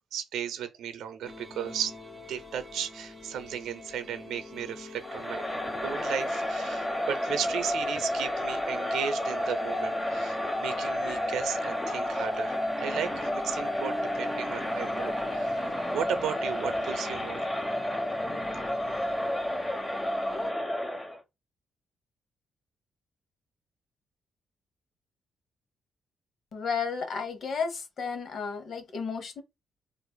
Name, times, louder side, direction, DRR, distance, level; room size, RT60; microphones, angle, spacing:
voice 1, 0.1-1.9 2.3-5.4 5.8-17.5, right 8 dB, 85° right, 0.6 m, -35 dB
sound 1, 1.2-20.5, left 2 dB, ahead, 1.5 m, -45 dB
Crowd, 5.0-21.2, left 1 dB, 15° left, 1.0 m, -31 dB
voice 2, 26.5-29.4, left 5 dB, 65° left, 0.9 m, -33 dB
4.7 x 2.5 x 2.2 m
cardioid pair, 75°, 0 cm